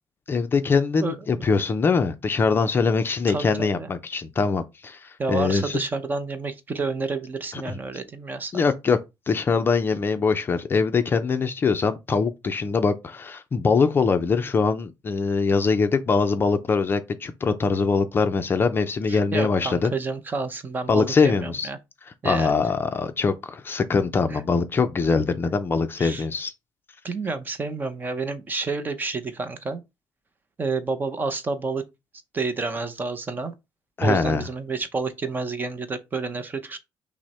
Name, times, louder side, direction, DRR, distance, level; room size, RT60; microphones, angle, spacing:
voice 1, 0.3-5.8 7.5-7.7 8.5-9.0 9.3-19.9 20.9-21.7 22.2-26.5 34.0-34.4, left 4 dB, 25° left, 0.4 m, -23 dB
voice 2, 3.3-3.9 5.2-8.5 19.1-21.8 22.2-22.5 24.3-24.4 26.0-26.3 27.0-29.8 30.6-31.9 32.3-33.5 34.0-36.8, right 4 dB, 25° right, 0.6 m, -29 dB
6.1 x 2.1 x 4.2 m
cardioid pair, 150°, 8 cm